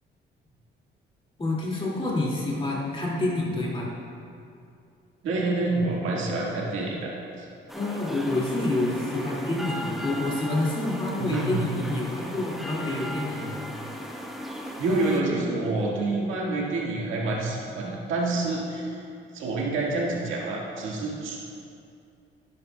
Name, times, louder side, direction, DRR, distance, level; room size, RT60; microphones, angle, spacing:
voice 1, 1.4-3.9 7.7-13.6, left 2 dB, 25° left, -4 dB, 2.2 m, -28 dB
voice 2, 5.2-7.5 11.2-11.5 14.8-19.0 19.3-21.4, right 2 dB, 85° right, -3 dB, 1.7 m, -27 dB
sound 1, 7.7-15.2, equal, ahead, 1.1 m, -37 dB
11.0 x 11.0 x 2.3 m, 2.5 s
cardioid pair, 90°, 20 cm